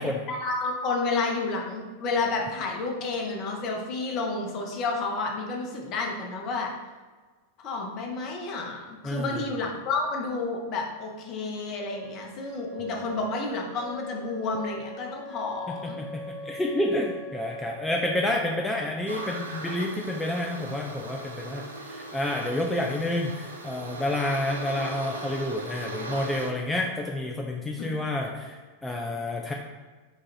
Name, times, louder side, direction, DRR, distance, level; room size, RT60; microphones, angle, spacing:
voice 1, 0.3-6.7 7.6-16.0 27.8-27.9, left 3 dB, 40° left, 1 dB, 0.8 m, -30 dB
voice 2, 9.0-9.4 12.8-13.1 15.7-29.5, left 1 dB, 5° left, 0 dB, 0.4 m, -29 dB
Wind instrument woodwind instrument, 11.9-19.6, equal, 35° right, 0.8 m, -42 dB
sound 1, 19.1-26.5, right 1 dB, 75° right, 0.5 m, -38 dB
4.0 x 2.4 x 4.4 m, 1.3 s
figure-of-eight pair, 90°, 0 cm